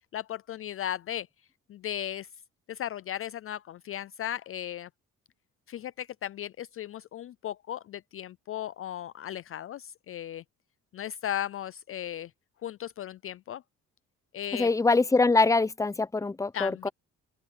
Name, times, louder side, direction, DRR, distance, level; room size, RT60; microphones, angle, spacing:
voice 1, 0.1-1.3 1.7-2.3 2.7-4.9 5.7-10.4 10.9-12.3 12.6-13.6 14.3-14.7 16.5-16.9, left 11 dB, 45° left, 0.4 m, -36 dB
voice 2, 14.5-16.9, left 3 dB, 10° left, 0.6 m, -24 dB
open air
cardioid pair, 90°, 30 cm